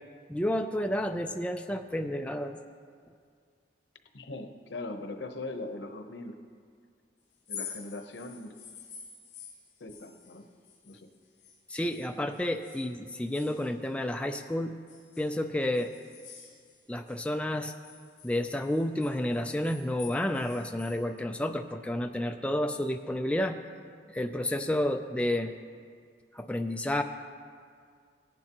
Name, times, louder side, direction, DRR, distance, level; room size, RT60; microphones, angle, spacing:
voice 1, 0.3-2.6 11.7-14.7 15.2-15.9 16.9-17.7 18.2-23.6 24.1-25.5 26.3-27.0, left 1 dB, 5° left, 5 dB, 0.3 m, -30 dB
voice 2, 4.1-6.4 7.5-8.5 9.8-10.4 10.8-11.1, left 2 dB, 85° left, 6 dB, 0.9 m, -40 dB
sound 1, 7.3-11.6 11.9-14.4 14.9-17.2 17.5-21.0, left 7 dB, 40° left, 3.0 m, -48 dB
17.5 x 10.5 x 2.9 m, 2.1 s
head